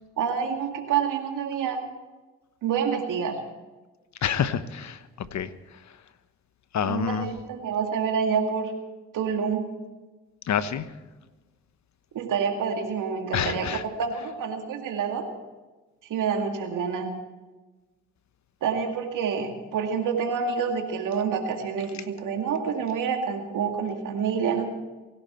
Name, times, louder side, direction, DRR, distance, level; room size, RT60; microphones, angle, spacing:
voice 1, 0.2-1.8 2.6-3.4 6.8-8.7 9.1-9.6 12.1-15.3 16.1-17.1 18.6-24.6, right 6 dB, 70° right, 4 dB, 2.2 m, -27 dB
voice 2, 4.2-6.0 6.7-7.3 10.5-10.9 13.3-13.8, left 8 dB, 60° left, 13 dB, 1.1 m, -28 dB
24.5 x 11.5 x 4.4 m, 1.2 s
supercardioid pair, 55°, 32 cm